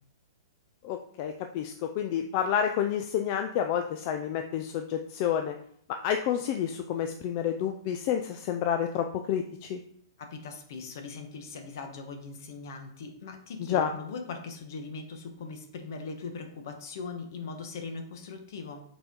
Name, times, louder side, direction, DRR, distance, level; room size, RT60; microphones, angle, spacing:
voice 1, 0.8-5.6 5.9-9.8 13.6-13.9, left 9 dB, 25° left, 6 dB, 0.3 m, -29 dB
voice 2, 10.2-18.8, left 4 dB, 50° left, 5 dB, 1.1 m, -40 dB
6.8 x 4.3 x 3.7 m, 0.63 s
hypercardioid pair, 175°, 2 cm